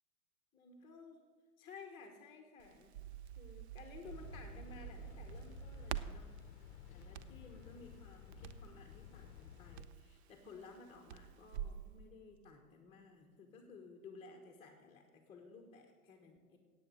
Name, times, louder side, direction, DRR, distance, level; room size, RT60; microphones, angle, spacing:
voice 1, 0.5-1.2 1.6-3.0 3.3-6.3 6.6-16.6, left 4 dB, 10° left, 2 dB, 1.0 m, -56 dB
Crackle, 2.6-11.8, right 10 dB, 50° right, 0.5 m, -48 dB
sound 1, 4.0-9.9, left 9 dB, 50° left, 0.7 m, -54 dB
9.1 x 8.3 x 7.6 m, 1.5 s
hypercardioid pair, 130°, 44 cm